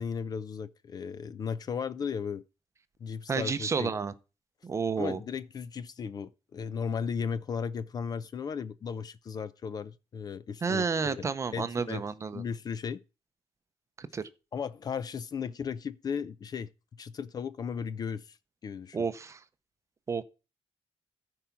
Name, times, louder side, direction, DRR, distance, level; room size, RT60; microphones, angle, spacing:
voice 1, 0.0-2.4 3.0-3.9 5.0-12.0 12.3-13.0 14.5-16.7 17.0-18.4 18.6-19.1, left 6 dB, 35° left, 0.5 m, -36 dB
voice 2, 3.3-4.1 4.6-5.2 10.6-12.4 14.0-14.2 18.9-19.4 20.1-20.2, right 5 dB, 30° right, 0.7 m, -30 dB
14.0 x 4.7 x 5.8 m
wide cardioid pair, 180°, 11 cm